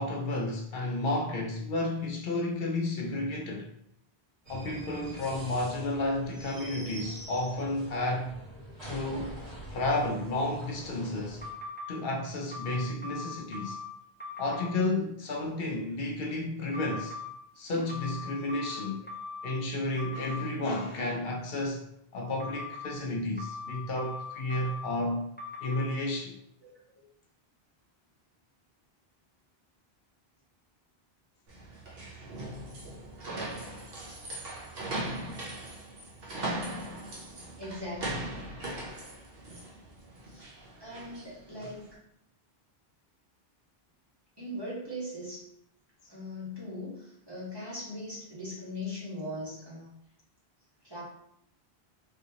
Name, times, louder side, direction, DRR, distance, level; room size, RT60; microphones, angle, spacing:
voice 1, 0.0-3.7 4.5-8.4 8.8-9.4 9.7-11.4 11.9-13.8 14.4-17.1 17.6-19.0 19.4-21.8 22.1-25.3 25.6-26.4, left 2 dB, 70° left, 0 dB, 0.8 m, -32 dB
sound 1, 4.4-11.5, right 1 dB, 50° right, 1.6 m, -45 dB
sound 2, 11.4-11.9 12.5-13.9 14.2-14.7 16.7-17.3 17.9-19.5 20.0-20.4 22.4-22.9 23.4-24.9 25.4-25.8, left 3 dB, 10° left, 0.6 m, -40 dB
sound 3, 31.5-41.9, right 1 dB, 70° right, 1.0 m, -39 dB
voice 2, 37.6-38.4 40.3-40.4 40.8-41.9 44.4-45.4 46.1-49.9 50.8-51.0, left 1 dB, 25° right, -8 dB, 1.3 m, -39 dB
3.3 x 2.7 x 2.8 m, 0.74 s
omnidirectional pair, 1.0 m